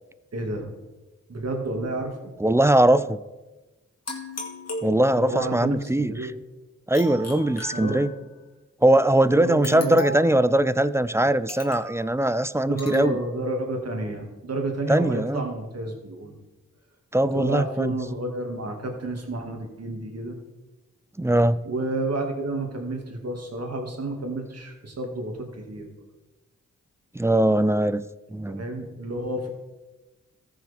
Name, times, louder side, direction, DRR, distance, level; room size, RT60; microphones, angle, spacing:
voice 1, 0.3-0.7 1.3-2.3 5.2-6.3 7.7-8.1 9.4-10.0 12.6-16.3 17.3-20.4 21.6-25.9 28.5-29.5, right 2 dB, 50° right, 2 dB, 2.2 m, -30 dB
voice 2, 2.4-3.2 4.8-6.3 6.9-8.1 8.8-13.2 14.9-15.4 17.1-17.9 21.2-21.6 27.1-28.0 28.3-28.6, right 1 dB, 10° right, 16 dB, 0.4 m, -21 dB
sound 1, 4.1-5.5 6.9-8.4 9.6-10.4 11.5-12.0 12.8-13.1, left 1 dB, 55° left, 2.2 m, -37 dB
14.0 x 6.3 x 3.5 m, 1.1 s
cardioid pair, 45°, 31 cm